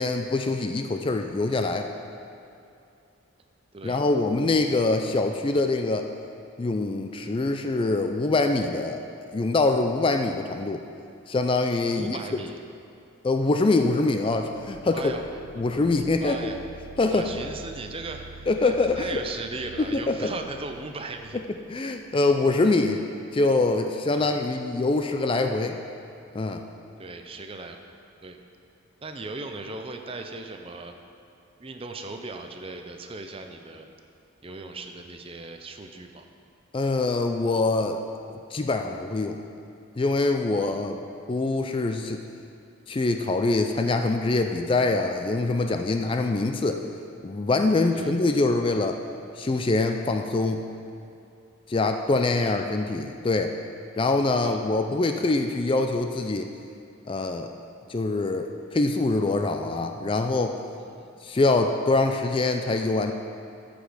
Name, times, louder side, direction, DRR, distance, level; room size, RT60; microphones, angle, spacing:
voice 1, 0.0-1.9 3.8-6.1 6.6-9.0 9.3-10.8 11.3-12.2 13.2-15.1 15.6-16.4 17.0-17.3 18.5-19.2 19.8-20.3 21.7-23.0 23.3-25.8 26.3-26.6 36.7-38.0 38.5-39.4 40.0-41.0 41.3-42.2 42.9-46.8 47.2-49.0 49.4-50.6 51.7-53.6 54.0-56.5 57.1-57.5 57.9-60.6 61.2-63.1, left 2 dB, 25° left, 5 dB, 0.3 m, -24 dB
voice 2, 11.9-12.6 14.9-15.2 16.2-16.6 17.1-21.4 22.4-22.6 24.1-24.5 27.0-27.8 28.2-28.4 29.0-30.9 31.6-33.9 34.4-36.2 40.6-40.8 47.9-48.2 52.0-52.1 52.4-52.6 54.4-54.6 61.0-61.1, right 3 dB, 25° right, 5 dB, 0.5 m, -38 dB
sound 1, 14.5-22.1, right 4 dB, 85° right, 0.5 m, -47 dB
14.0 x 5.2 x 5.0 m, 2.5 s
head